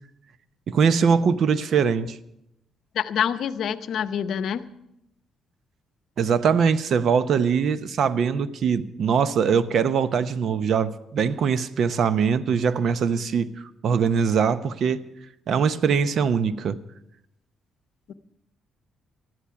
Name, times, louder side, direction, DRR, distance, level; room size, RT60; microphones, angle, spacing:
voice 1, 0.7-2.2 6.2-13.5 13.8-15.0 15.5-16.8, right 6 dB, 65° right, 0.7 m, -22 dB
voice 2, 3.0-4.6 18.1-18.2, left 8 dB, 70° left, 0.7 m, -26 dB
13.5 x 13.0 x 5.8 m
cardioid pair, 90°, 0 cm